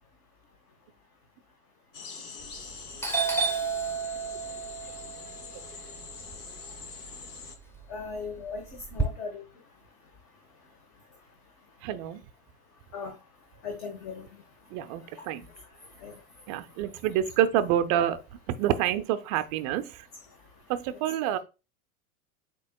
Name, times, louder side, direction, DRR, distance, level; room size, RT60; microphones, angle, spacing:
sound 1, 1.9-7.6, left 4 dB, 85° left, 0.9 m, -44 dB
Doorbell, 2.4-2.7 3.0-7.1 7.5-9.0, right 4 dB, 5° left, 0.8 m, -31 dB
voice 1, 7.9-9.4 12.9-13.1 13.6-14.3 15.1-15.3 16.0-16.2, left 4 dB, 45° left, 1.3 m, -38 dB
voice 2, 11.8-12.2 14.7-15.5 16.5-18.2 18.5-20.0 20.7-21.4, right 11 dB, 30° right, 0.4 m, -27 dB
8.2 x 2.9 x 2.2 m
hypercardioid pair, 95°, 45 cm